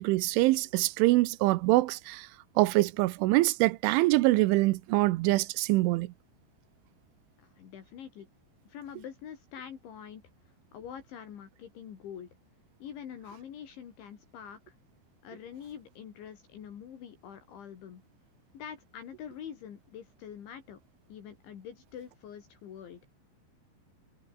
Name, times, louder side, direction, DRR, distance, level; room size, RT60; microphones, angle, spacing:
voice 1, 0.0-2.2 2.6-6.1, right 20 dB, 80° right, 3.1 m, -24 dB
voice 2, 7.4-8.3 8.7-10.2 10.7-12.3 12.8-14.8 15.2-18.0 18.5-20.8 21.1-23.0, left 8 dB, 65° left, 5.3 m, -45 dB
omnidirectional pair, 5.8 m